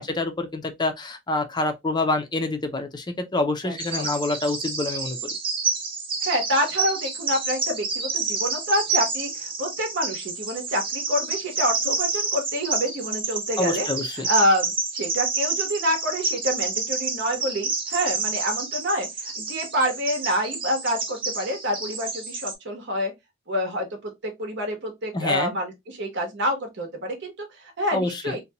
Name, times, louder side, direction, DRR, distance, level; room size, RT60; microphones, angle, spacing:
voice 1, 0.0-5.4 13.6-14.3 25.1-25.5 27.9-28.4, left 2 dB, 20° left, 0.5 m, -27 dB
voice 2, 3.6-4.1 6.2-13.9 14.3-23.1 23.5-28.4, equal, 55° right, 0.9 m, -27 dB
Bird vocalization bird call bird song, 3.8-22.5, right 4 dB, 25° right, 0.6 m, -29 dB
2.7 x 2.2 x 2.8 m
head